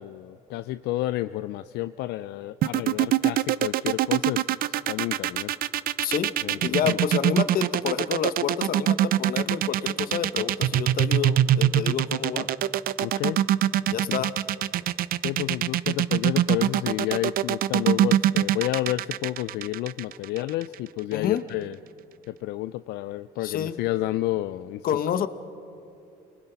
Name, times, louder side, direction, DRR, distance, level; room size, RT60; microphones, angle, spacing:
voice 1, 0.0-5.5 6.4-7.0 13.0-13.4 15.2-21.8 22.3-24.9, left 15 dB, 80° left, 13 dB, 0.4 m, -30 dB
sound 1, 2.6-20.7, right 12 dB, 60° right, 0.5 m, -23 dB
voice 2, 6.0-6.3 6.6-12.5 13.8-14.4 21.1-21.4 23.4-23.8 24.8-25.3, left 9 dB, 60° left, 12 dB, 1.1 m, -28 dB
28.0 x 20.5 x 5.7 m, 2.7 s
cardioid pair, 110°, 17 cm